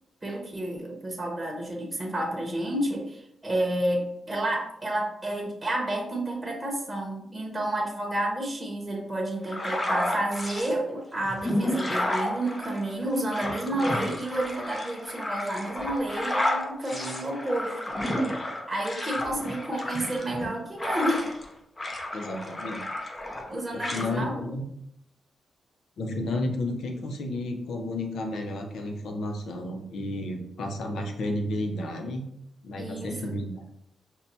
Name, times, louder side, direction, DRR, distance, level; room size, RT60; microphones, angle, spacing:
voice 1, 0.2-18.0 18.7-21.3 23.5-24.3 32.8-33.3, right 1 dB, 15° right, -1 dB, 0.9 m, -30 dB
sound 1, 9.5-10.7 11.2-21.5 21.8-23.5 23.8-24.1, left 1 dB, 25° left, 0.6 m, -31 dB
voice 2, 22.1-22.8 23.7-24.7 26.0-32.3 32.6-33.6, left 1 dB, 80° left, 4 dB, 0.6 m, -32 dB
5.5 x 2.2 x 2.7 m, 0.77 s
cardioid pair, 95°, 0 cm